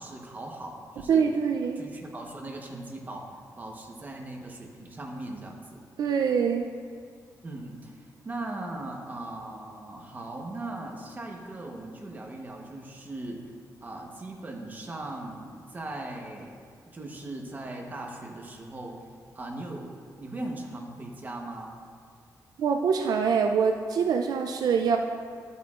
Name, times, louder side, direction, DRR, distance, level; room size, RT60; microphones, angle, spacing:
voice 1, 0.0-1.3 1.7-5.8 7.4-13.5 13.8-16.6 16.9-19.1 19.3-19.9 20.2-21.8, right 2 dB, 25° right, 0 dB, 1.0 m, -39 dB
voice 2, 1.1-1.8 6.0-6.7 22.6-25.0, right 6 dB, 70° right, 4 dB, 0.4 m, -24 dB
11.5 x 8.2 x 2.4 m, 2.1 s
wide cardioid pair, 155°, 7 cm